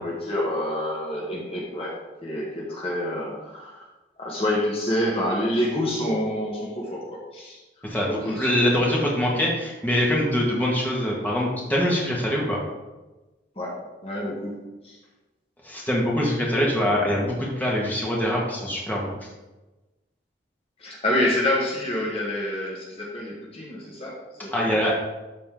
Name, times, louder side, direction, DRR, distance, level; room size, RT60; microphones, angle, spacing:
voice 1, 0.0-2.0 2.2-3.8 4.2-7.6 8.0-8.5 13.5-15.0 20.8-24.8, left 1 dB, 35° left, -4 dB, 1.4 m, -27 dB
voice 2, 7.8-12.6 15.6-19.1 24.5-24.9, equal, 10° left, -4 dB, 1.6 m, -24 dB
12.5 x 4.2 x 3.7 m, 1.1 s
head